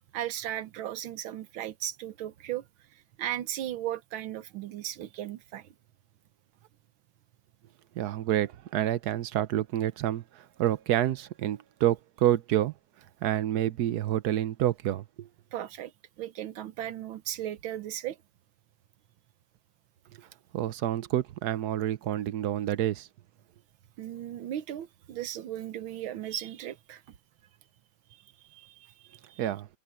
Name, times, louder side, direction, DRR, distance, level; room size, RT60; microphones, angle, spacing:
voice 1, 0.1-2.6 3.2-5.7 15.5-15.9 16.2-18.2 24.0-27.0 28.4-29.4, right 12 dB, 80° right, 1.7 m, -36 dB
voice 2, 8.0-12.7 13.2-15.3 20.5-23.1 29.4-29.7, right 12 dB, 65° right, 1.1 m, -28 dB
omnidirectional pair, 2.2 m